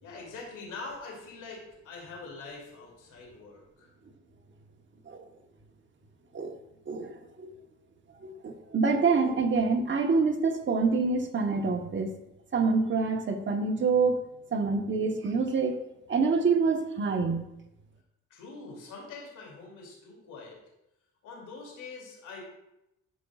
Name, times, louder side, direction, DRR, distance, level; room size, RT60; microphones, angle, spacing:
voice 1, 0.0-3.9 18.3-20.6 21.2-22.4, left 3 dB, 85° left, -2 dB, 2.7 m, -44 dB
voice 2, 6.9-7.5 8.2-12.1 12.5-14.2 14.5-15.8 16.1-17.4, right 4 dB, 40° right, 4 dB, 1.1 m, -26 dB
12.5 x 5.4 x 2.4 m, 0.87 s
cardioid pair, 90°, 30 cm